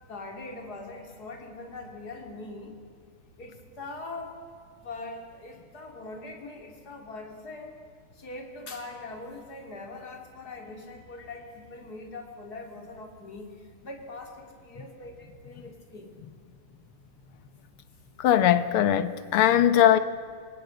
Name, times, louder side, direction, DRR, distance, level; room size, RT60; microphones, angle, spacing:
voice 1, 0.1-2.8 3.4-4.4 4.8-7.8 8.1-16.1, left 2 dB, 45° left, 3 dB, 3.4 m, -42 dB
voice 2, 18.2-20.0, left 11 dB, 85° left, 12 dB, 1.9 m, -20 dB
28.0 x 20.0 x 7.8 m, 2.2 s
omnidirectional pair, 2.3 m